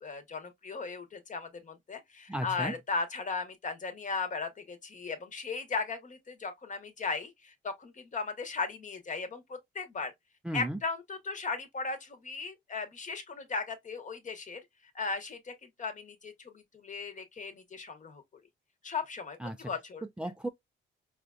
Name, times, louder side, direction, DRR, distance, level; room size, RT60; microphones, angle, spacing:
voice 1, 0.0-10.1 10.5-14.6 14.9-18.2 18.8-20.0, left 4 dB, 40° left, 1.1 m, -37 dB
voice 2, 2.3-2.8 10.4-10.8 19.4-19.7 20.2-20.5, right 1 dB, 5° right, 0.4 m, -35 dB
4.8 x 2.5 x 2.3 m
cardioid pair, 90°, 20 cm